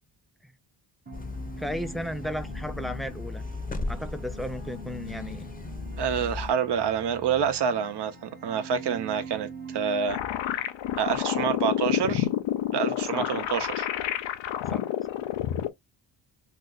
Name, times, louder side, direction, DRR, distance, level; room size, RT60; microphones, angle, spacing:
sound 1, 1.1-6.5, left 3 dB, 20° left, 0.7 m, -37 dB
sound 2, 1.1-10.2, right 2 dB, 20° right, 0.9 m, -43 dB
voice 1, 1.6-3.4 3.9-5.5 13.1-13.3 14.7-14.8, equal, ahead, 0.3 m, -34 dB
voice 2, 6.0-10.2 11.0-12.3 12.7-13.9, right 7 dB, 60° right, 0.8 m, -27 dB
sound 3, 10.1-15.7, left 11 dB, 70° left, 0.6 m, -29 dB
2.7 x 2.5 x 3.8 m
cardioid pair, 80°, 47 cm